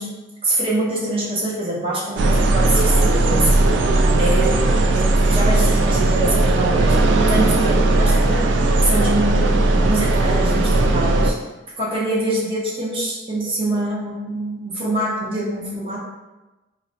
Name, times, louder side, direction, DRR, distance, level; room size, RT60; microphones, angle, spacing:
voice 1, 0.4-8.5 8.8-11.4 11.8-16.0, right 1 dB, 30° right, -4 dB, 0.6 m, -25 dB
sound 1, 2.2-11.3, right 2 dB, 80° right, 0.3 m, -17 dB
4.0 x 2.1 x 2.6 m, 1.1 s
head